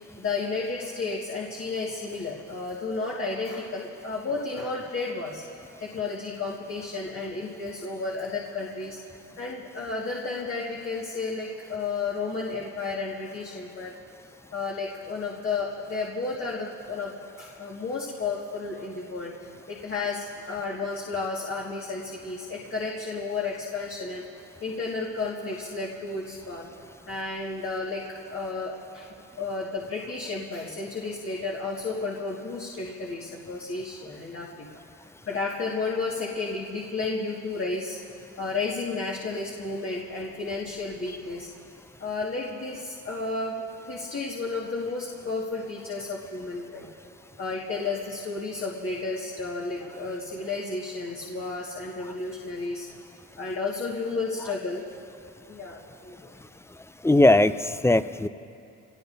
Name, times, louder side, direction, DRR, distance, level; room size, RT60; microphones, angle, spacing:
voice 1, 0.2-5.4 5.8-9.0 9.4-13.9 14.5-19.3 19.7-24.3 24.6-26.7 27.1-29.1 29.4-34.7 35.3-38.0 38.4-41.5 42.0-46.9 47.4-52.9 53.4-54.8 55.5-56.3, left 3 dB, 45° left, -4 dB, 1.9 m, -32 dB
voice 2, 57.0-58.3, left 2 dB, 10° left, 12 dB, 0.4 m, -19 dB
26.0 x 19.0 x 2.7 m, 2.6 s
cardioid pair, 90°, 30 cm